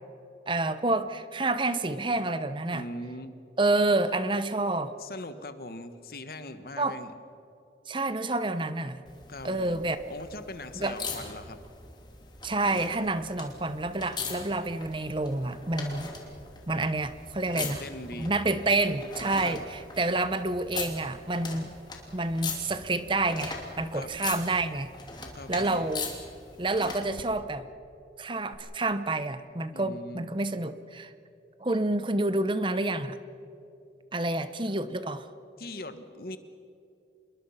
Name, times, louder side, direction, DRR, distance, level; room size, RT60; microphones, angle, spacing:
voice 1, 0.5-2.8 3.6-4.9 6.8-6.9 7.9-9.0 9.4-10.0 10.7-11.0 12.4-16.1 16.7-17.8 18.2-21.7 22.1-24.9 25.5-26.0 26.6-27.7 28.2-31.1 31.6-33.2 34.1-35.3, right 2 dB, 30° right, 12 dB, 0.9 m, -28 dB
voice 2, 2.7-3.4 5.0-7.1 9.3-11.6 17.5-18.3 19.4-19.6 23.9-24.2 25.3-25.8 29.7-30.3 34.4-34.8 35.6-36.4, left 1 dB, 55° left, 10 dB, 1.3 m, -41 dB
sound 1, 9.1-27.2 28.5-28.6, left 4 dB, 25° left, 2.8 m, -40 dB
27.0 x 21.5 x 5.7 m, 2.8 s
head